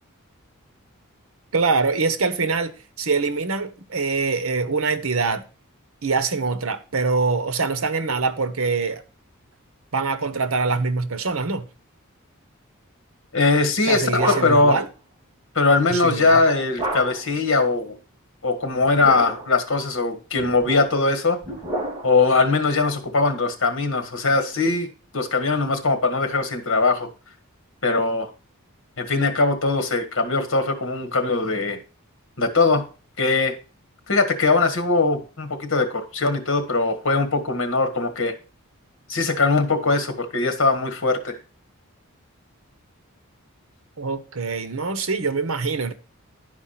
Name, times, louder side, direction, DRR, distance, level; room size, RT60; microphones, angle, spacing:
voice 1, 1.5-5.4 6.0-9.0 9.9-11.7 13.9-14.9 15.9-16.4 44.0-45.9, right 4 dB, 75° right, 1.0 m, -24 dB
voice 2, 13.3-14.8 15.6-18.0 18.4-21.4 22.0-24.9 25.1-27.1 27.8-28.3 29.0-31.8 32.4-32.8 33.2-33.5 34.1-38.3 39.1-41.4, left 3 dB, 65° left, 1.6 m, -21 dB
sound 1, 14.1-14.8 16.8-17.4 18.8-19.6 20.4-22.3, right 1 dB, 20° right, 3.0 m, -31 dB
11.0 x 4.8 x 5.8 m
head